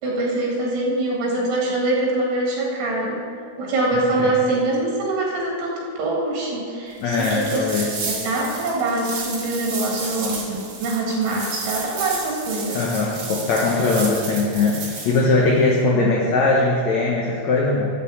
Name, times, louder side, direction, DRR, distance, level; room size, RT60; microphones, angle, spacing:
voice 1, 0.0-3.2 3.6-7.7 8.1-12.8, right 2 dB, 80° right, -3 dB, 4.1 m, -24 dB
voice 2, 3.9-4.3 7.0-7.9 12.7-17.9, left 3 dB, 90° left, -2 dB, 1.5 m, -20 dB
sound 1, 7.1-15.2, right 4 dB, 65° right, 3.7 m, -32 dB
8.8 x 6.3 x 7.8 m, 2.4 s
omnidirectional pair, 4.7 m